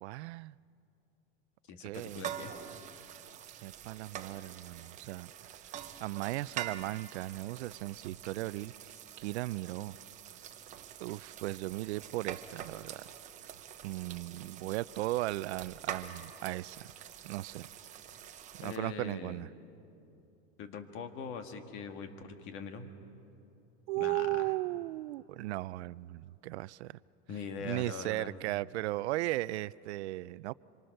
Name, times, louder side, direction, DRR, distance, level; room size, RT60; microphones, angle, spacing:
voice 1, 0.0-0.6 1.8-2.2 3.5-5.5 6.0-8.9 9.2-10.0 11.0-13.0 13.8-16.9 17.2-17.7 18.5-19.5 23.9-27.0 27.6-30.5, right 18 dB, 80° right, 20 dB, 0.5 m, -36 dB
voice 2, 1.7-2.5 18.6-19.5 20.6-22.9 23.9-24.5 27.3-28.3, left 5 dB, 35° left, 6 dB, 1.7 m, -42 dB
sound 1, 1.9-18.8, right 9 dB, 20° right, 0.9 m, -46 dB
26.0 x 24.0 x 6.5 m, 2.8 s
supercardioid pair, 165°, 33 cm